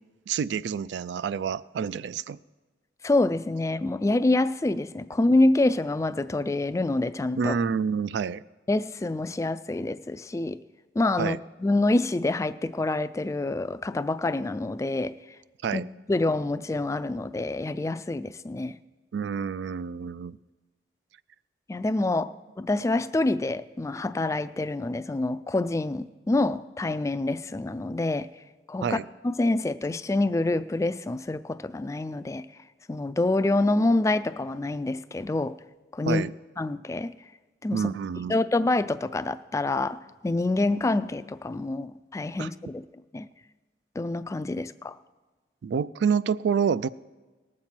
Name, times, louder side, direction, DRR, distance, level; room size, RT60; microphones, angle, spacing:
voice 1, 0.3-2.4 7.4-8.4 11.2-11.4 15.6-15.9 19.1-20.4 28.8-29.1 36.1-36.3 37.7-38.4 42.4-42.5 45.6-46.9, right 6 dB, 75° right, 0.3 m, -28 dB
voice 2, 3.0-7.6 8.7-10.6 11.0-15.2 15.7-15.8 16.1-18.8 21.7-28.3 28.7-32.5 32.9-35.6 35.9-36.2 36.6-37.1 37.6-37.8 38.3-42.8 43.1-43.3 44.0-45.0, left 2 dB, 15° left, 0.3 m, -26 dB
19.0 x 7.4 x 4.4 m
head